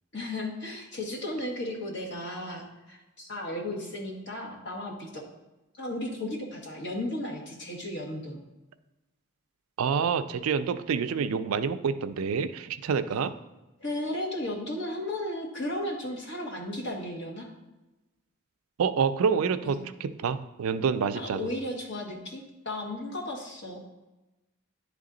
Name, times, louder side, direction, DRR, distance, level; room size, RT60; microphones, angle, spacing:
voice 1, 0.1-5.2 5.8-8.4 13.8-17.5 19.6-19.8 21.1-23.8, left 1 dB, 50° left, -1 dB, 1.3 m, -35 dB
voice 2, 9.8-13.3 18.8-21.5, right 6 dB, 75° right, 11 dB, 0.4 m, -27 dB
9.8 x 3.5 x 3.8 m, 1.0 s
head